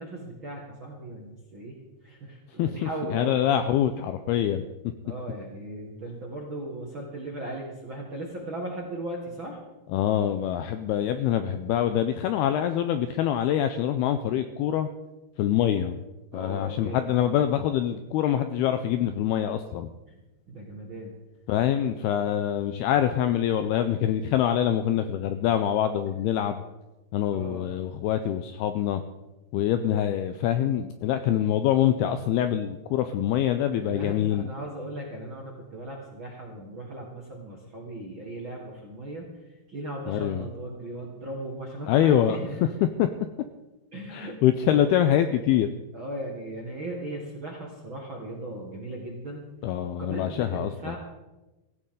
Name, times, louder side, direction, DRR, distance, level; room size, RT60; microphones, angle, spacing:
voice 1, 0.0-3.4 5.0-9.6 16.3-17.3 20.5-21.2 27.3-27.7 29.7-29.9 33.7-39.3 39.7-42.8 43.9-44.4 44.7-44.9 45.9-49.4 50.0-51.0, right 1 dB, 50° right, -2 dB, 1.4 m, -37 dB
voice 2, 2.6-4.6 9.9-14.9 15.4-16.0 16.3-19.9 21.5-26.6 27.1-29.0 29.5-34.5 40.1-40.5 41.9-42.4 43.0-43.1 44.1-45.7 49.6-51.0, left 10 dB, 85° left, 8 dB, 2.3 m, -25 dB
16.0 x 16.0 x 3.8 m, 1.1 s
omnidirectional pair, 5.2 m